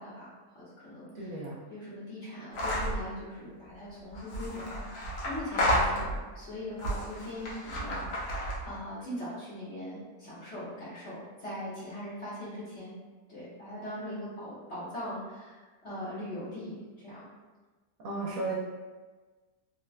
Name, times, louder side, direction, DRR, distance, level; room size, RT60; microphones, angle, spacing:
voice 1, 0.0-1.4 1.7-8.3 8.6-12.9 13.3-17.3, left 1 dB, 55° left, -9 dB, 1.0 m, -41 dB
voice 2, 1.1-1.6 18.0-18.5, right 2 dB, 70° right, -5 dB, 1.1 m, -34 dB
sound 1, 2.5-3.0 4.1-6.3 6.8-8.8, equal, 75° left, 1.2 m, -31 dB
3.2 x 2.1 x 2.4 m, 1.3 s
omnidirectional pair, 1.7 m